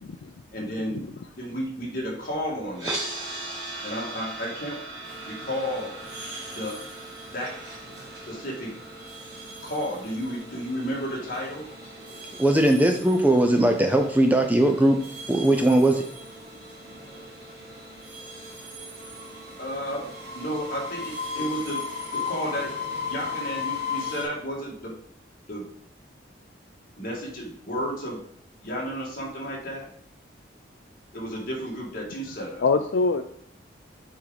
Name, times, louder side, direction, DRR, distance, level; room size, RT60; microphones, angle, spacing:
voice 1, 0.0-0.3 0.9-1.2 32.6-33.2, left 4 dB, 75° left, 8 dB, 0.4 m, -24 dB
voice 2, 0.5-1.0 1.4-3.0 3.8-4.8 5.2-6.0 6.5-6.8 7.3-7.6 8.3-8.7 9.6-11.7 19.6-20.1 20.3-22.8 23.1-25.0 25.5-25.6 27.0-28.2 28.6-29.9 31.1-32.6, equal, 50° left, -3 dB, 2.1 m, -32 dB
sound 1, 2.7-12.8, right 2 dB, 75° right, 2.7 m, -40 dB
sound 2, 5.0-24.2, left 4 dB, 60° right, 2.1 m, -38 dB
voice 3, 12.4-15.0 15.3-16.0, right 1 dB, 10° right, 4 dB, 0.5 m, -19 dB
7.3 x 4.9 x 4.0 m, 0.64 s
head